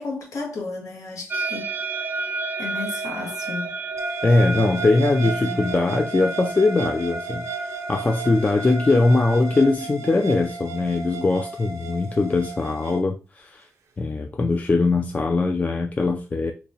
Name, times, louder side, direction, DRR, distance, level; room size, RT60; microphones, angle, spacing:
voice 1, 0.0-2.1 2.6-3.8 5.2-5.9, left 3 dB, 75° left, 1.4 m, -33 dB
sound 1, 1.3-9.7, right 3 dB, 40° right, 0.4 m, -32 dB
sound 2, 4.0-13.0, right 5 dB, 75° right, 0.6 m, -35 dB
voice 2, 4.2-13.7 14.0-16.5, left 3 dB, 30° left, 0.4 m, -21 dB
3.4 x 2.9 x 2.8 m
cardioid pair, 80°, 5 cm